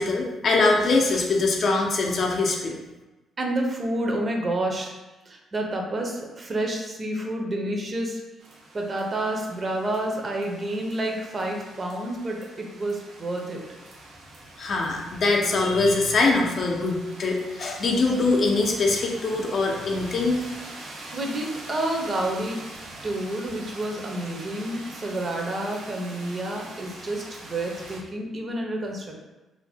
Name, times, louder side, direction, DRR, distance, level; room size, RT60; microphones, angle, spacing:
voice 1, 0.0-2.7 14.6-20.4, left 3 dB, 55° left, 0 dB, 0.5 m, -23 dB
voice 2, 3.4-4.9 5.3-8.2 8.7-13.6 20.9-22.6 23.0-29.2, right 1 dB, 35° right, 1 dB, 0.5 m, -29 dB
sound 1, 8.4-28.0, right 2 dB, 85° right, 0.7 m, -44 dB
2.5 x 2.0 x 3.4 m, 1.1 s
cardioid pair, 90°, 0 cm